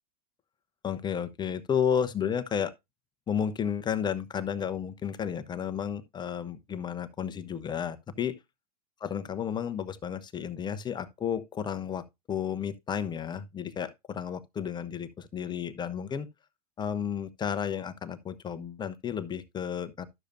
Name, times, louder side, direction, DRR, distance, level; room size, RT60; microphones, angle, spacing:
voice 1, 0.8-2.7 3.3-8.4 9.0-16.3 16.8-20.1, left 8 dB, 20° left, 0.8 m, -32 dB
12.0 x 6.6 x 2.6 m
hypercardioid pair, 110°, 20 cm